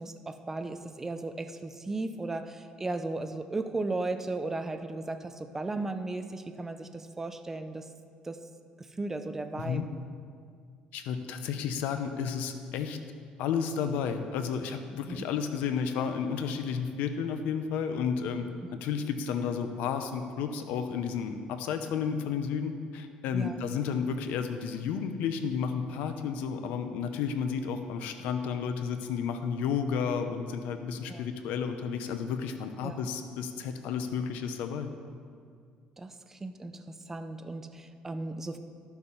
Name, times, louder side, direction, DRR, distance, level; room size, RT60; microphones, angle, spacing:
voice 1, 0.0-7.9 8.2-8.4 9.0-9.8 15.1-15.2 23.3-23.6 31.1-31.2 32.8-33.0 36.0-38.6, right 2 dB, 15° right, 8 dB, 0.6 m, -36 dB
voice 2, 9.5-9.9 10.9-13.0 13.4-18.5 18.7-34.9, left 6 dB, 90° left, 8 dB, 0.8 m, -32 dB
11.5 x 7.0 x 5.5 m, 2.2 s
cardioid pair, 130°, 3 cm